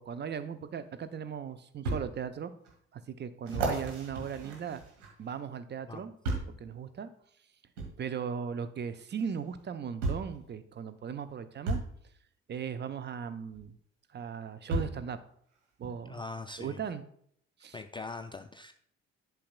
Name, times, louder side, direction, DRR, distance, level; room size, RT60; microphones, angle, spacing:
voice 1, 0.0-2.5 2.9-4.8 5.2-6.2 6.5-7.1 8.0-11.8 12.5-13.8 14.1-15.2 15.8-16.2 16.6-17.0 17.6-17.8, right 7 dB, 30° right, 11 dB, 0.6 m, -38 dB
sound 1, 1.9-2.0 2.7-2.8 3.5-5.4 6.2-6.6 7.8-7.9 9.2-9.3 10.0-10.4 11.7-11.9 13.5-13.6 14.7-15.0 15.8-15.9, right 2 dB, 75° right, 1.7 m, -33 dB
voice 2, 16.1-16.8 17.7-18.7, left 3 dB, 15° left, 7 dB, 0.3 m, -42 dB
11.5 x 6.0 x 2.2 m, 0.66 s
figure-of-eight pair, 45°, 36 cm